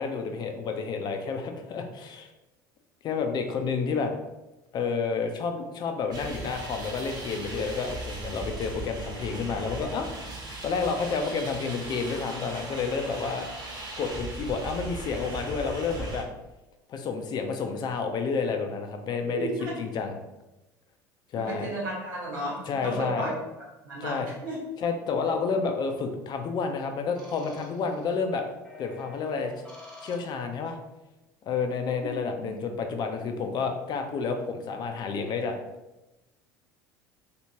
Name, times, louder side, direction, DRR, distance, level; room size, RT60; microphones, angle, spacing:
voice 1, 0.0-2.3 3.0-4.1 4.7-10.1 10.6-13.5 14.0-16.3 16.9-19.5 19.8-20.1 21.3-21.7 22.7-23.3 24.0-24.3 24.8-28.5 28.8-29.5 30.0-30.8 31.4-35.6, left 5 dB, 40° left, 5 dB, 0.5 m, -30 dB
sound 1, 6.1-16.2, right 2 dB, 40° right, 1.2 m, -38 dB
voice 2, 19.3-19.7 21.3-23.3 23.8-24.6 32.0-32.1 32.4-32.5, right 1 dB, 75° right, -4 dB, 1.4 m, -34 dB
sound 2, 25.6-26.2 27.1-28.2 28.6-30.7, left 2 dB, 10° left, 1.3 m, -49 dB
3.3 x 2.9 x 2.9 m, 0.99 s
hypercardioid pair, 70°, 11 cm